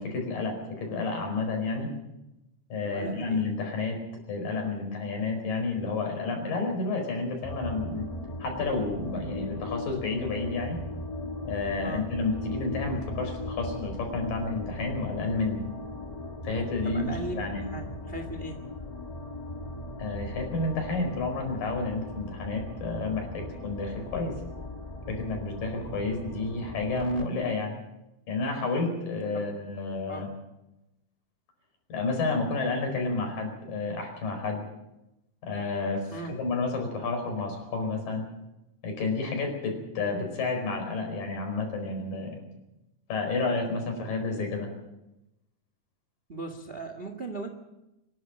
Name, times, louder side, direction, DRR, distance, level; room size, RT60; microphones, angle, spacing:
voice 1, 0.0-1.9 2.7-4.0 4.3-8.0 8.4-10.8 11.4-15.6 16.4-17.6 20.0-24.4 25.1-27.7 28.3-30.3 31.9-34.6 35.4-36.1 36.4-38.2 38.8-42.4 43.1-44.7, left 3 dB, 85° left, 3 dB, 6.5 m, -30 dB
voice 2, 2.8-3.4 11.8-12.1 16.8-18.6 29.3-29.5 30.1-30.3 36.1-36.4 46.3-47.5, right 2 dB, 30° right, 7 dB, 1.2 m, -38 dB
sound 1, 7.4-27.3, left 2 dB, 65° left, 0.3 m, -38 dB
25.0 x 11.5 x 9.0 m, 0.92 s
omnidirectional pair, 3.8 m